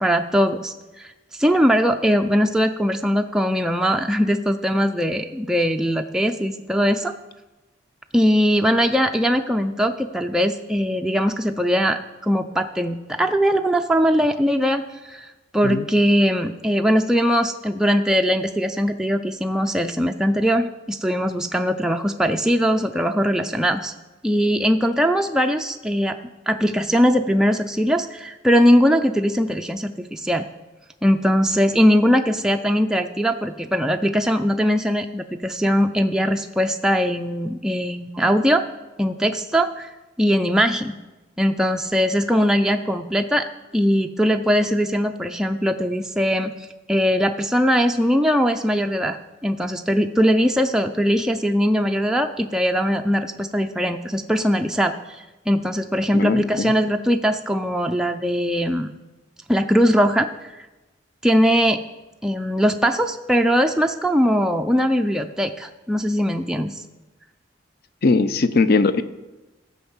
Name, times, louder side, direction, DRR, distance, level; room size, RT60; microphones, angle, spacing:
voice 1, 0.0-7.1 8.1-15.3 15.5-23.9 24.2-26.2 26.5-30.5 31.0-38.6 39.0-39.9 40.2-41.0 41.4-43.5 43.7-46.5 46.9-58.9 59.5-60.7 61.2-61.8 62.2-66.8, equal, 5° right, 4 dB, 0.4 m, -20 dB
voice 2, 56.1-56.7 68.0-69.0, left 3 dB, 55° left, 13 dB, 0.6 m, -19 dB
14.0 x 5.3 x 7.2 m, 1.1 s
head